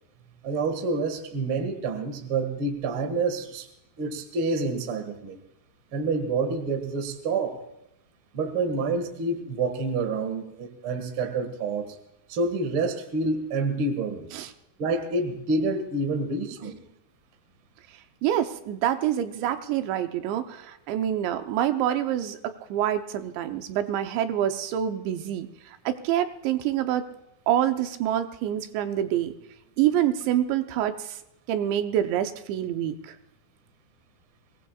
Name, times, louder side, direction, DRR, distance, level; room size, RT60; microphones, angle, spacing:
voice 1, 0.4-3.7 4.0-5.4 5.9-7.6 8.3-11.9 12.3-14.3 14.8-16.8, right 3 dB, 50° right, 6 dB, 1.6 m, -28 dB
voice 2, 18.2-22.4 22.7-25.5 25.9-27.0 27.5-29.3 29.8-31.2 31.5-33.1, right 11 dB, 80° right, 8 dB, 3.1 m, -26 dB
24.0 x 18.5 x 2.4 m, 0.84 s
omnidirectional pair, 5.2 m